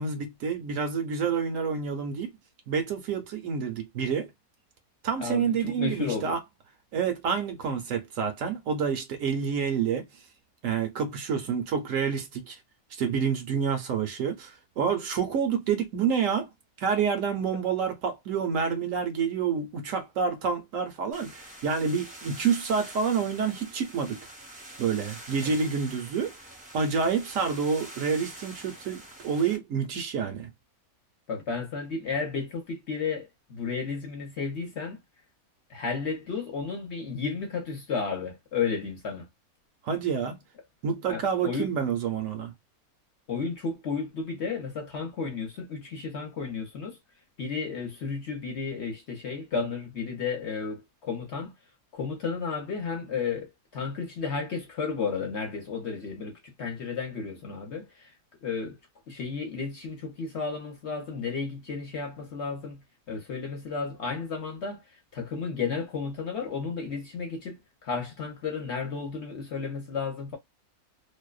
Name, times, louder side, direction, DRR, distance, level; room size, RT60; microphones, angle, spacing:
voice 1, 0.0-2.3 2.7-4.3 5.0-6.4 6.9-10.1 10.6-12.6 12.9-16.5 16.8-24.2 24.8-26.3 26.7-30.5 39.8-40.4 40.8-42.5, right 6 dB, 70° right, 0.9 m, -28 dB
voice 2, 5.2-6.4 25.4-25.5 31.3-35.0 35.7-39.3 41.1-41.7 43.3-47.0 47.4-51.5 51.9-58.1 58.4-58.8 59.1-62.8 63.1-64.8 65.1-70.4, left 5 dB, 55° left, 1.0 m, -33 dB
sound 1, 21.1-29.6, right 1 dB, 10° right, 0.6 m, -45 dB
2.6 x 2.1 x 2.2 m
omnidirectional pair, 1.6 m